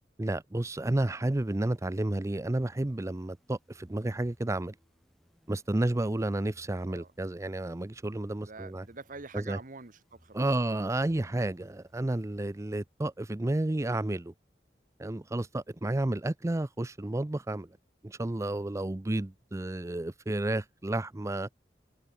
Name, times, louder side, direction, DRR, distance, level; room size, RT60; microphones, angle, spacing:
voice 1, 0.2-4.7 5.5-8.8 9.3-9.6 10.3-14.3 15.0-17.7 18.0-21.5, right 1 dB, 15° right, 0.5 m, -31 dB
sound 1, 1.4-13.1, equal, ahead, 3.1 m, -65 dB
voice 2, 8.4-10.5, right 4 dB, 50° right, 1.3 m, -45 dB
head